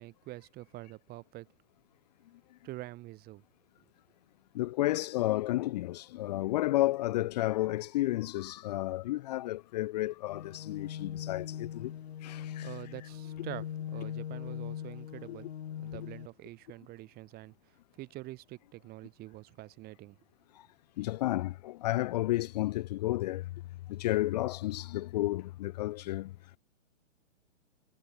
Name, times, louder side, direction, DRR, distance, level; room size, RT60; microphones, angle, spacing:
voice 1, 0.0-1.5 2.6-3.4 12.6-15.5 15.8-20.2, right 18 dB, 25° right, 3.6 m, -46 dB
voice 2, 4.5-11.9 12.2-12.7 15.3-15.4 21.0-23.4 23.9-26.3, left 16 dB, 35° left, 0.8 m, -32 dB
sound 1, 10.3-16.3, left 9 dB, 55° left, 3.1 m, -40 dB
figure-of-eight pair, 125°, 37 cm